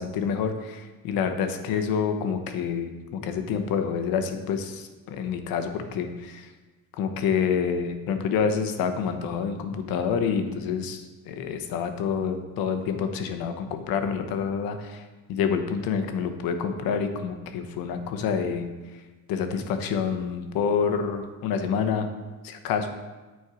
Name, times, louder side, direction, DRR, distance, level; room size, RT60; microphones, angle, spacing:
voice 1, 0.0-6.5 7.0-15.0 15.3-18.7 19.3-22.1 22.4-22.9, left 6 dB, 75° left, 6 dB, 1.0 m, -27 dB
9.4 x 4.6 x 4.9 m, 1.2 s
cardioid pair, 160°, 35 cm